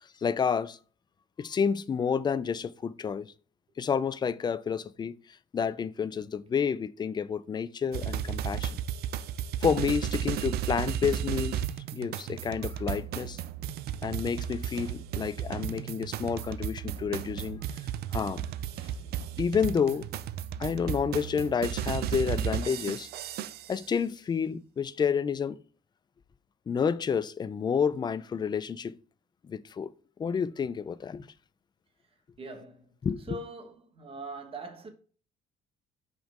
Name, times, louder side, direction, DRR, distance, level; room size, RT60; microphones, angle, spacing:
voice 1, 0.2-0.8 1.4-3.3 3.8-5.1 5.5-8.8 9.6-11.6 11.9-13.4 14.0-17.6 18.1-18.4 19.4-20.1 20.6-23.1 23.7-25.6 26.7-28.9 29.5-29.9 30.2-31.3 33.0-33.4, left 6 dB, 25° left, 0.4 m, -29 dB
sound 1, 7.9-23.8, right 10 dB, 70° right, 0.5 m, -34 dB
voice 2, 32.4-32.9 33.3-34.9, right 2 dB, 35° right, 1.5 m, -42 dB
5.4 x 5.1 x 3.6 m
cardioid pair, 110°, 17 cm